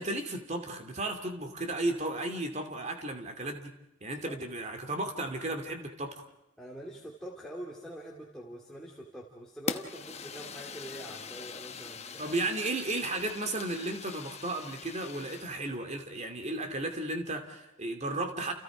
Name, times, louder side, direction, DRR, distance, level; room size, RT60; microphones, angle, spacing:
voice 1, 0.0-3.7 4.0-6.3 12.2-18.5, right 2 dB, 30° right, 6 dB, 2.5 m, -34 dB
voice 2, 6.6-12.6 12.9-13.0, equal, 5° left, -3 dB, 2.7 m, -45 dB
Fire, 9.7-15.6, left 5 dB, 30° left, 1.1 m, -42 dB
29.5 x 29.0 x 5.1 m, 0.85 s
head